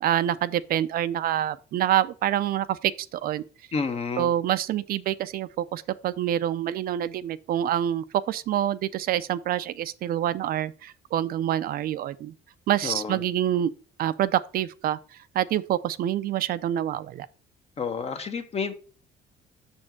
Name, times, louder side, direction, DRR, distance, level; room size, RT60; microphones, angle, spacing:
voice 1, 0.0-3.4 4.2-12.3 12.7-13.7 14.0-15.0 15.3-17.3, right 11 dB, 60° right, 0.5 m, -26 dB
voice 2, 3.7-4.3 12.8-13.2 17.8-18.7, left 5 dB, 35° left, 1.2 m, -30 dB
6.8 x 4.4 x 5.9 m
cardioid pair, 110°, 17 cm